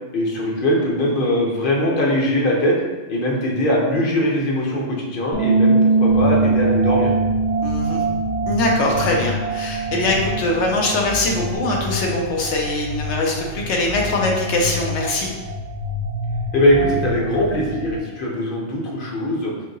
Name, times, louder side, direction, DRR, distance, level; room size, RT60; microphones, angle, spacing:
voice 1, 0.1-2.8 3.1-7.1 16.5-19.5, left 1 dB, 55° left, -2 dB, 0.9 m, -21 dB
Bass guitar, 5.3-11.6, right 3 dB, 10° right, 0.4 m, -21 dB
sound 1, 6.1-18.0, equal, 55° right, 1.0 m, -28 dB
voice 2, 7.6-8.0 8.5-15.3, left 2 dB, 80° left, 0 dB, 1.0 m, -22 dB
4.5 x 2.7 x 2.6 m, 1.2 s
omnidirectional pair, 1.2 m